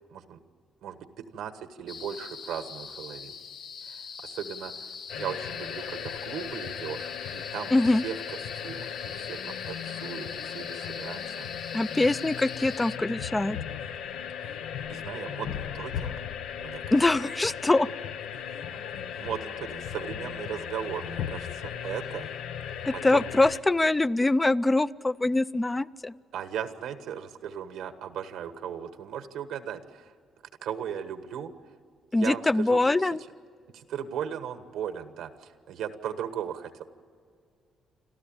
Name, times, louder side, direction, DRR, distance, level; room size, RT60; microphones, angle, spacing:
voice 1, 0.8-3.3 3.8-7.7 8.0-8.1 8.5-11.5 14.9-16.1 16.6-17.0 19.2-22.3 22.6-23.3 26.3-30.1 30.6-31.5 32.1-32.8 33.7-36.8, right 8 dB, 85° right, 9 dB, 1.3 m, -37 dB
sound 1, 1.9-13.0, left 5 dB, 60° left, 1.1 m, -42 dB
sound 2, 5.1-23.6, left 8 dB, 85° left, 0.8 m, -37 dB
voice 2, 7.7-8.0 11.7-13.6 16.9-17.9 22.8-26.2 32.1-33.2, left 2 dB, 15° left, 16 dB, 0.5 m, -24 dB
28.5 x 13.0 x 8.8 m, 2.2 s
cardioid pair, 90°, 0 cm